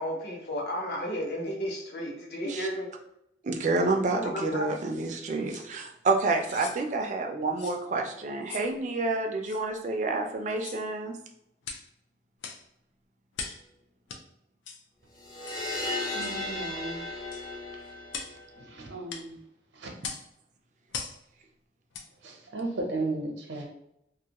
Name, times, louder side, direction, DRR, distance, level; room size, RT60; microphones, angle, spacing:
voice 1, 0.0-2.9 4.2-4.7, equal, 60° left, -1 dB, 0.7 m, -33 dB
voice 2, 3.4-11.2, right 3 dB, 40° right, 3 dB, 0.3 m, -29 dB
sound 1, 5.5-5.7 6.3-6.8 7.6-7.8 8.5-8.7 9.4-9.6 10.5-10.9 11.6-11.9 12.4-12.7 13.3-13.6 14.1-14.2 14.7-14.8 15.5-15.6 16.2-16.4 17.3-17.5 18.1-18.4 19.1-19.3 20.0-20.3 20.9-21.2 21.9-22.1 22.6-22.7, left 5 dB, 90° left, 0.4 m, -40 dB
sound 2, 15.2-18.8, left 2 dB, 15° left, 0.6 m, -35 dB
voice 3, 16.1-17.0 18.6-19.4 19.7-19.9 22.2-23.7, right 2 dB, 85° right, 1 dB, 0.7 m, -35 dB
2.5 x 2.3 x 2.8 m, 0.78 s
head